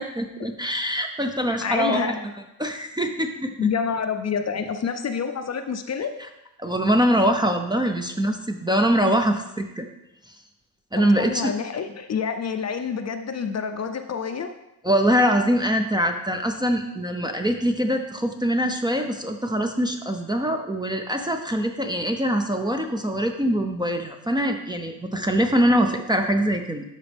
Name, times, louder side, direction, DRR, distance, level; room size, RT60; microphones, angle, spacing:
voice 1, 0.0-2.2 2.6-3.5 6.6-9.9 10.9-11.5 14.8-26.8, equal, 10° right, 4 dB, 0.5 m, -23 dB
voice 2, 1.6-2.2 3.6-6.1 11.0-14.5, left 6 dB, 40° left, 7 dB, 0.6 m, -27 dB
12.0 x 4.2 x 3.5 m, 0.89 s
cardioid pair, 115°, 42 cm